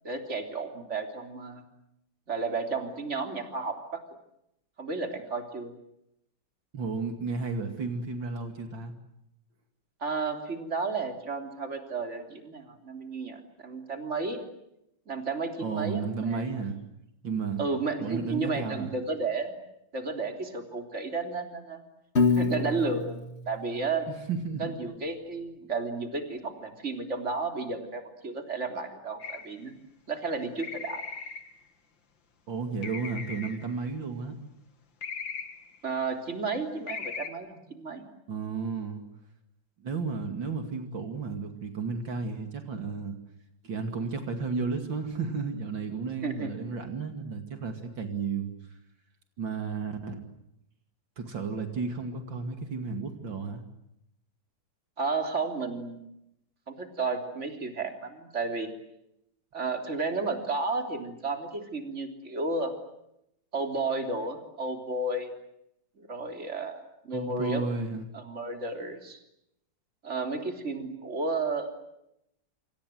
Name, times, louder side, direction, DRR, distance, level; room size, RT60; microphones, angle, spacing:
voice 1, 0.0-1.6 2.3-4.0 4.8-5.7 10.0-14.4 15.1-16.6 17.6-19.5 19.9-21.8 22.3-23.2 23.5-24.1 24.6-29.7 30.1-31.0 35.8-38.1 46.2-46.5 55.0-56.0 56.7-58.7 59.5-62.7 63.5-65.3 66.0-67.6 68.1-69.2 70.0-71.9, right 3 dB, 35° right, 5 dB, 3.7 m, -32 dB
voice 2, 6.7-8.9 15.6-16.8 17.2-17.6 18.0-18.9 24.3-24.8 32.5-34.3 38.3-39.0 39.8-43.1 43.6-48.5 49.4-50.2 51.2-53.6 67.1-68.1, right 4 dB, 75° right, 6 dB, 3.2 m, -33 dB
Piano, 22.2-24.4, left 4 dB, 35° left, 2.1 m, -28 dB
sound 1, 29.2-29.6 30.6-31.6 32.8-33.7 35.0-35.8 36.9-37.3, left 5 dB, 75° left, 2.8 m, -38 dB
28.0 x 27.0 x 7.8 m, 0.81 s
omnidirectional pair, 2.1 m